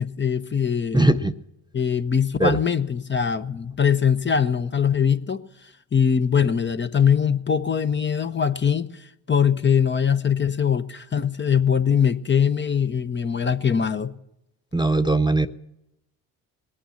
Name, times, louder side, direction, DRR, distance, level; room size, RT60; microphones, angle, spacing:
voice 1, 0.0-1.1 1.7-5.4 5.9-14.1, left 7 dB, 25° left, 0.9 m, -22 dB
voice 2, 0.9-1.3 2.4-2.6 14.7-15.5, right 2 dB, 10° right, 0.6 m, -19 dB
20.5 x 9.0 x 7.1 m
hypercardioid pair, 55°, 41 cm